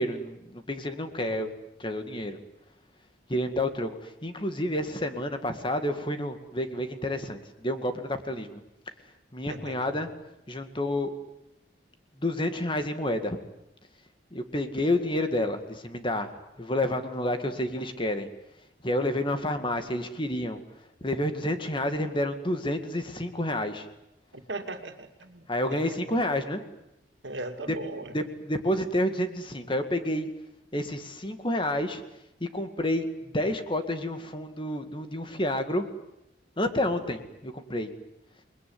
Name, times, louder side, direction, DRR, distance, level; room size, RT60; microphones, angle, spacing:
voice 1, 0.0-1.5 1.8-2.4 3.3-8.6 9.3-10.1 10.5-11.1 12.2-13.4 14.3-16.3 16.6-18.3 18.8-20.6 21.0-23.9 25.5-26.6 28.1-30.3 30.7-32.0 32.4-35.8 36.6-37.9, left 1 dB, 25° left, 8 dB, 2.1 m, -29 dB
voice 2, 1.2-1.5 9.5-9.9 24.3-25.9 27.2-28.1, right 2 dB, 75° right, 6 dB, 2.5 m, -39 dB
28.5 x 21.0 x 9.5 m, 0.87 s
head